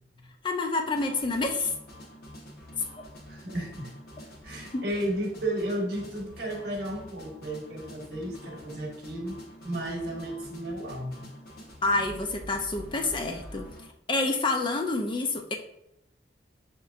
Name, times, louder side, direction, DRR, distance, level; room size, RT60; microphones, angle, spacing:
voice 1, 0.4-1.7 4.7-4.8 11.8-15.5, left 3 dB, 25° left, 4 dB, 0.4 m, -28 dB
sound 1, 0.9-13.9, equal, 55° left, 1.0 m, -47 dB
voice 2, 3.3-3.9 4.4-9.4 9.6-11.3, right 1 dB, 60° right, 0 dB, 1.1 m, -33 dB
6.5 x 2.9 x 2.4 m, 0.82 s
head